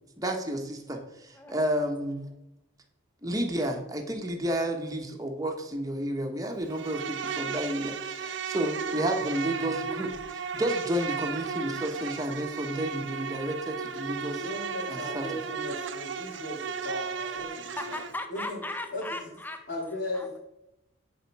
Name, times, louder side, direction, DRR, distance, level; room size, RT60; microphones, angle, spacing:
voice 1, 0.2-2.3 3.2-14.4 14.9-15.3, right 1 dB, 20° right, 3 dB, 1.1 m, -31 dB
voice 2, 1.3-1.7 17.8-19.6 20.1-20.4, left 2 dB, 10° left, 6 dB, 0.7 m, -37 dB
Insect, 6.7-18.1, right 6 dB, 70° right, 0.7 m, -35 dB
voice 3, 14.4-18.0 18.3-18.6 18.9-19.3 19.7-20.4, left 1 dB, 70° left, -7 dB, 3.2 m, -37 dB
10.0 x 5.0 x 4.6 m, 0.88 s
head